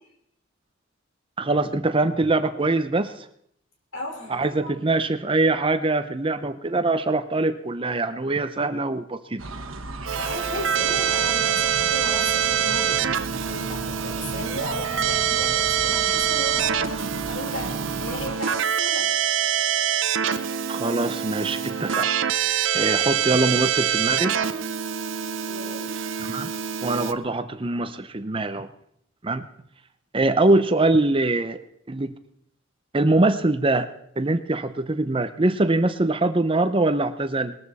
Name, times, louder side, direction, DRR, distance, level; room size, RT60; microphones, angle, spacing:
voice 1, 1.4-3.1 4.3-9.4 20.7-22.1 22.7-24.4 26.2-26.5 26.8-28.7 29.2-29.5 30.1-31.6 31.9-32.1 32.9-33.9 34.2-37.6, right 2 dB, 25° right, 11 dB, 0.7 m, -23 dB
voice 2, 3.9-4.7 10.1-13.0 13.5-19.1 25.4-25.9, left 1 dB, 75° left, 1 dB, 4.6 m, -35 dB
sound 1, 9.4-18.3, right 2 dB, 85° right, 1.3 m, -36 dB
Keyboard (musical), 10.1-27.1, right 9 dB, 70° right, 0.7 m, -25 dB
20.0 x 13.5 x 4.2 m, 0.70 s
head